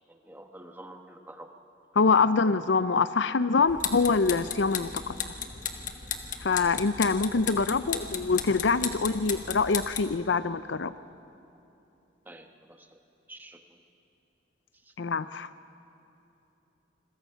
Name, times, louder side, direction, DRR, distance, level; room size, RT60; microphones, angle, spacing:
voice 1, 0.1-1.5 12.3-13.0 13.3-13.8, right 1 dB, 10° right, 4 dB, 1.2 m, -48 dB
voice 2, 2.0-5.1 6.4-10.9 15.0-15.5, left 4 dB, 70° left, 14 dB, 0.6 m, -25 dB
sound 1, 3.7-10.2, left 7 dB, 40° left, 1.2 m, -35 dB
27.0 x 21.5 x 5.7 m, 2.9 s
head